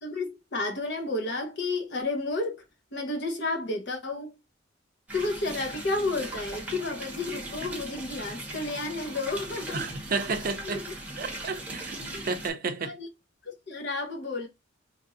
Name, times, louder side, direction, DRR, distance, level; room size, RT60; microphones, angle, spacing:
voice 1, 0.0-2.6 2.9-4.3 5.1-9.9 10.6-10.8 12.1-12.3 12.8-13.1 13.4-14.5, left 2 dB, 60° left, 0.9 m, -31 dB
sound 1, 5.1-12.5, right 2 dB, 10° right, 0.8 m, -39 dB
voice 2, 9.7-10.9 11.2-12.9, right 4 dB, 45° right, 0.5 m, -32 dB
3.0 x 2.6 x 3.7 m
head